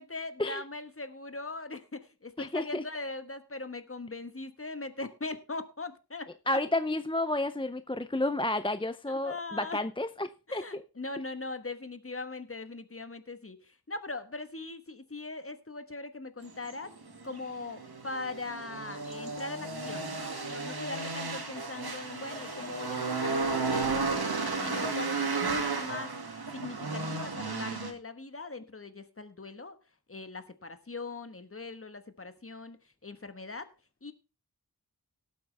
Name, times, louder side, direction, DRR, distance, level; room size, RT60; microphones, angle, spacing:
voice 1, 0.0-6.6 9.1-9.8 10.5-16.9 17.2-24.3 24.6-26.1 26.5-29.8 30.1-32.8 33.0-33.7 34.0-34.1, left 3 dB, 35° left, 1.3 m, -40 dB
voice 2, 2.4-2.8 6.5-10.8, left 1 dB, 15° left, 0.5 m, -31 dB
sound 1, 16.5-27.9, right 3 dB, 80° right, 2.2 m, -33 dB
18.0 x 8.0 x 3.3 m
wide cardioid pair, 65°, 38 cm